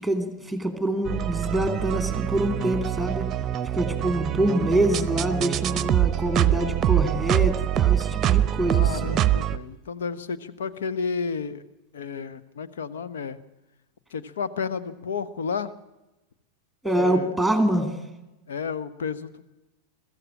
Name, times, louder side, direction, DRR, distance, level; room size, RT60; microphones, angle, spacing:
voice 1, 0.0-3.3 3.7-9.2 16.8-17.9, right 1 dB, ahead, 7 dB, 2.8 m, -25 dB
sound 1, 1.1-9.6, right 12 dB, 30° right, 0.8 m, -24 dB
voice 2, 8.6-11.6 11.9-13.4 14.1-15.7 17.0-17.3 18.5-19.4, left 5 dB, 60° left, 12 dB, 1.2 m, -32 dB
23.0 x 14.5 x 8.7 m, 1.0 s
figure-of-eight pair, 90°, 0 cm